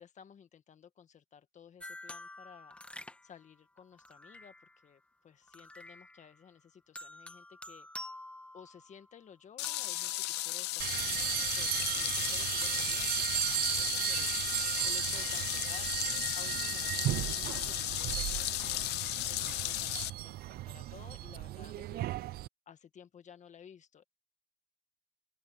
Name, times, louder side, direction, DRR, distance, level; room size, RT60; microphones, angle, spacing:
voice 1, 0.0-2.8 3.2-7.9 8.5-15.9 16.3-22.4 22.7-24.0, left 8 dB, 45° left, 1.7 m, -55 dB
sound 1, 1.8-4.9 5.5-6.5 6.9-9.1 9.6-10.9, left 1 dB, 5° left, 1.8 m, -49 dB
sound 2, 9.6-20.1, left 18 dB, 85° left, 0.7 m, -35 dB
sound 3, 10.8-22.5, right 15 dB, 65° right, 0.5 m, -35 dB
open air
cardioid pair, 110°, 17 cm